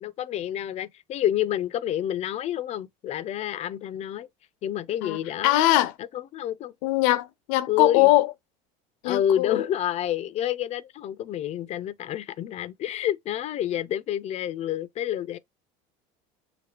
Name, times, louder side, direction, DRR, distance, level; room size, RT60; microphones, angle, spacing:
voice 1, 0.0-4.3 4.6-5.6 6.1-6.7 7.7-8.1 9.0-15.4, left 11 dB, 40° left, 0.4 m, -28 dB
voice 2, 5.0-5.9 6.8-8.3 9.0-9.7, left 16 dB, 80° left, 0.6 m, -22 dB
5.9 x 2.6 x 2.9 m
cardioid pair, 125°, 17 cm